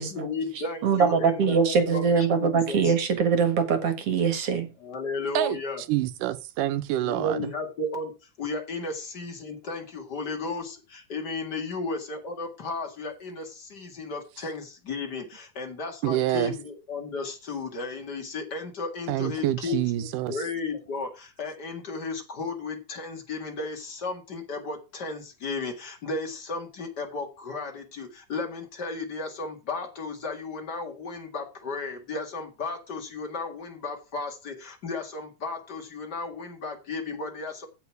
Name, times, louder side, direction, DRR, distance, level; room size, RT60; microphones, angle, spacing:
voice 1, 0.0-2.9 4.8-5.8 7.0-37.7, left 3 dB, 35° left, 2.0 m, -34 dB
voice 2, 0.8-4.7, right 6 dB, 50° right, 2.3 m, -23 dB
voice 3, 5.9-7.5 16.0-16.5 19.1-20.4, right 14 dB, 85° right, 2.4 m, -27 dB
15.5 x 5.3 x 4.7 m
omnidirectional pair, 3.7 m